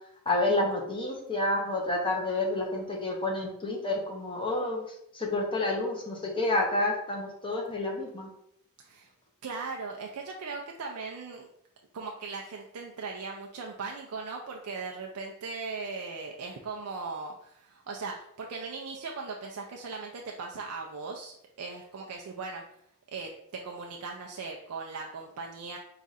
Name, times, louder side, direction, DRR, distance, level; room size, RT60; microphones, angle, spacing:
voice 1, 0.3-4.9 5.1-8.3, left 2 dB, 25° left, -1 dB, 0.9 m, -29 dB
voice 2, 8.8-9.1 9.4-11.5 11.9-22.6 23.1-23.3 23.6-25.8, right 4 dB, 80° right, 1 dB, 0.5 m, -38 dB
4.7 x 2.5 x 4.1 m, 0.75 s
head